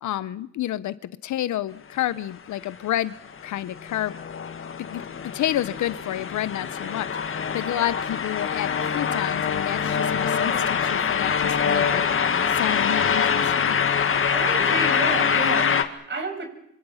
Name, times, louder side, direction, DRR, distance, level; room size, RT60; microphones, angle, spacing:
voice 1, 0.0-0.9 1.2-3.1 3.4-4.2 4.8-5.0 5.3-12.3 12.6-13.8, left 13 dB, 70° left, 16 dB, 0.9 m, -29 dB
sound 1, 3.3-15.8, left 6 dB, 45° left, 1.9 m, -24 dB
voice 2, 14.3-16.4, right 3 dB, 35° right, 5 dB, 6.5 m, -31 dB
27.0 x 26.0 x 5.7 m, 0.75 s
cardioid pair, 90°, 30 cm